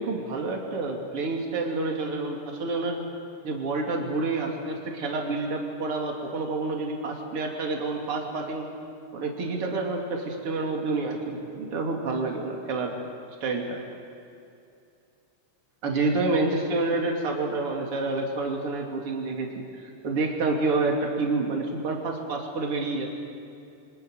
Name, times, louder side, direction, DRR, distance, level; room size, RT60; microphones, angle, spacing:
voice 1, 0.0-3.0 3.4-8.7 9.1-12.9 13.4-13.8 15.8-19.5 19.8-23.1, right 3 dB, 40° right, 0 dB, 3.5 m, -28 dB
29.0 x 24.5 x 6.6 m, 2.6 s
omnidirectional pair, 3.9 m